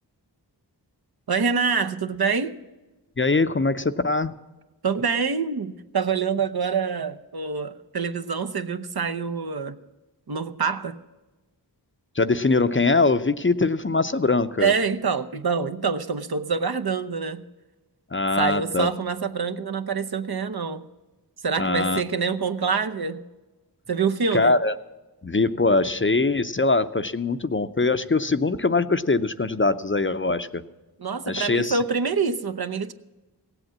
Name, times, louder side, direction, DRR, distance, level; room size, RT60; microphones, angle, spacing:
voice 1, 1.3-2.5 4.8-9.8 10.3-10.9 14.6-17.4 18.4-20.8 21.4-23.2 23.9-24.5 31.0-32.9, right 5 dB, 60° right, 0.8 m, -26 dB
voice 2, 3.2-4.3 12.2-14.7 18.1-18.9 21.6-22.0 24.3-24.7 25.2-30.6 31.3-31.8, left 3 dB, 30° left, 0.6 m, -22 dB
16.5 x 8.0 x 7.2 m
wide cardioid pair, 40°, 42 cm